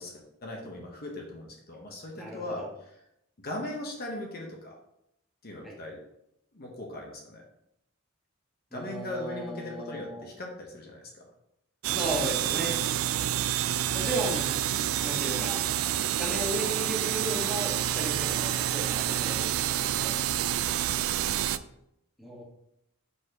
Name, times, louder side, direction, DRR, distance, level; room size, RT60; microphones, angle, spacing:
voice 1, 0.0-2.7 3.4-4.8 5.4-6.0 6.5-7.4 8.7-11.3 11.9-12.1, left 1 dB, 50° left, 0 dB, 1.1 m, -39 dB
voice 2, 2.1-2.7 5.6-5.8 8.7-10.3 11.9-12.8 13.9-14.6 15.0-15.6 16.2-20.2 22.2-22.4, right 1 dB, ahead, -4 dB, 1.4 m, -35 dB
sound 1, 11.8-21.6, right 11 dB, 70° right, 0.3 m, -28 dB
5.3 x 4.2 x 4.8 m, 0.79 s
head